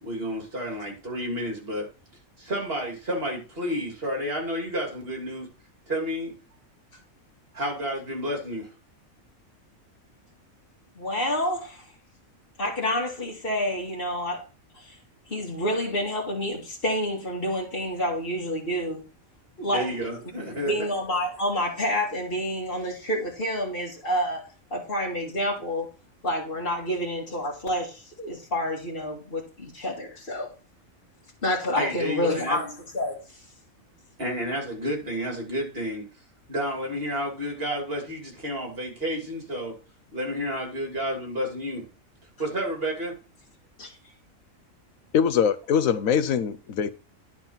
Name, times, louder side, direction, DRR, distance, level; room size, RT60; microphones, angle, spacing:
voice 1, 0.0-1.9 2.4-5.5 5.9-6.3 7.5-8.7 19.6-20.9 31.7-32.6 34.2-36.0 36.5-39.7 40.1-41.8 42.4-43.1, equal, 45° right, 3.2 m, -30 dB
voice 2, 11.0-11.9 12.6-14.4 14.8-15.0 15.3-19.0 19.6-19.9 20.4-24.4 24.7-25.9 26.2-30.5 31.4-33.2 43.8-43.9, left 1 dB, 40° left, 2.6 m, -28 dB
voice 3, 45.1-46.9, left 7 dB, 80° left, 1.2 m, -23 dB
11.0 x 4.7 x 5.8 m
omnidirectional pair, 1.4 m